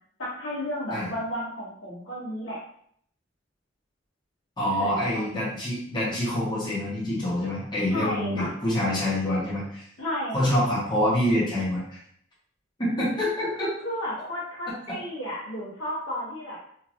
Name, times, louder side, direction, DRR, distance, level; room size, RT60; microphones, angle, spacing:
voice 1, 0.2-2.6 4.6-5.2 7.9-8.5 10.0-10.5 13.6-16.6, equal, 85° left, -6 dB, 1.3 m, -33 dB
voice 2, 4.6-9.8 10.3-12.0 12.8-13.7, left 1 dB, 25° left, -8 dB, 1.1 m, -26 dB
3.0 x 2.7 x 2.5 m, 0.66 s
head